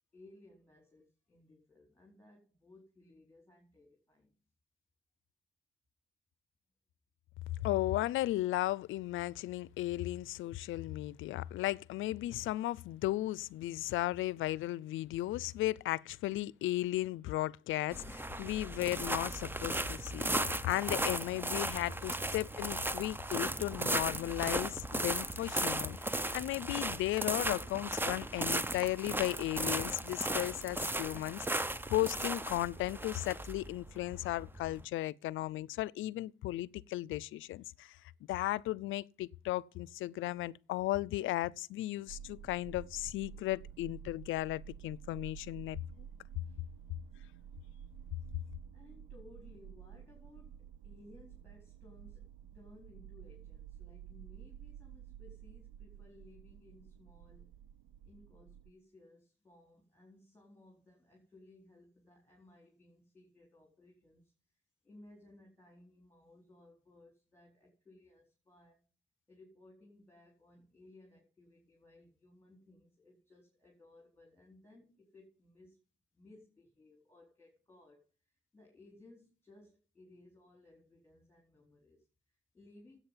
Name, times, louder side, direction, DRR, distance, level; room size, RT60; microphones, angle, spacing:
voice 1, 0.1-4.4 46.4-46.7 48.7-57.6 58.0-64.3 64.8-68.8 69.3-75.8 76.1-83.0, left 2 dB, 10° left, 4.5 m, -60 dB
voice 2, 7.6-20.3 20.6-26.0 26.3-31.6 31.9-38.0 38.3-46.1, left 16 dB, 85° left, 0.5 m, -35 dB
sound 1, 17.9-34.8, right 1 dB, 10° right, 0.8 m, -36 dB
sound 2, 42.1-58.7, right 9 dB, 85° right, 0.6 m, -51 dB
10.0 x 8.5 x 7.4 m
cardioid pair, 90°, 20 cm